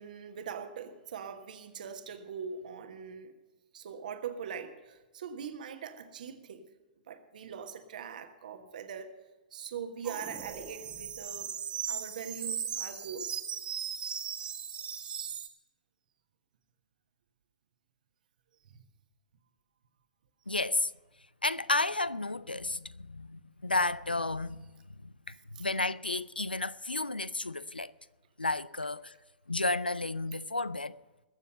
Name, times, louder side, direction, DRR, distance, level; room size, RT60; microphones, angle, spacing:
voice 1, 0.0-3.3 3.7-6.7 7.1-9.1 9.5-11.5 11.9-13.4 14.4-14.5 18.7-18.8 25.5-25.6, right 7 dB, 60° right, 1.3 m, -42 dB
sound 1, 10.0-15.5, right 8 dB, 20° right, 1.2 m, -38 dB
voice 2, 20.5-20.9 21.4-24.7 25.0-27.9 28.4-29.1 29.5-31.0, left 2 dB, 90° left, 0.4 m, -32 dB
21.5 x 7.1 x 5.6 m
figure-of-eight pair, 110°, 5 cm